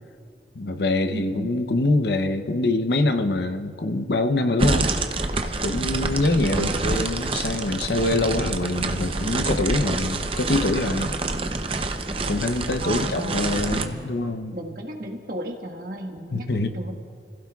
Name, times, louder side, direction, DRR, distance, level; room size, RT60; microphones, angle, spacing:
voice 1, 0.5-4.9 5.6-11.1 12.3-14.6 16.3-16.8, left 2 dB, 70° left, 8 dB, 0.8 m, -24 dB
voice 2, 1.1-1.6 6.3-6.9 12.8-14.1 14.5-16.9, right 1 dB, 55° right, 2 dB, 1.5 m, -35 dB
sound 1, 4.6-13.9, right 3 dB, 30° right, 0.7 m, -27 dB
29.5 x 16.0 x 2.4 m, 2.2 s
head